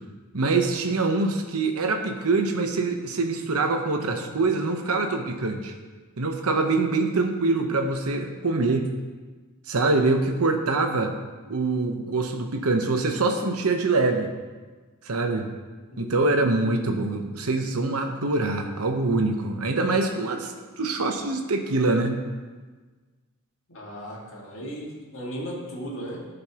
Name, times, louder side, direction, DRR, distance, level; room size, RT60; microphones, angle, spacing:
voice 1, 0.3-5.7 6.2-8.9 9.7-11.1 11.5-14.3 15.0-15.5 16.0-22.2, right 3 dB, 85° right, 5 dB, 1.0 m, -24 dB
voice 2, 15.9-16.4 23.7-26.3, equal, 65° left, -3 dB, 2.0 m, -36 dB
15.5 x 5.2 x 3.0 m, 1.4 s
head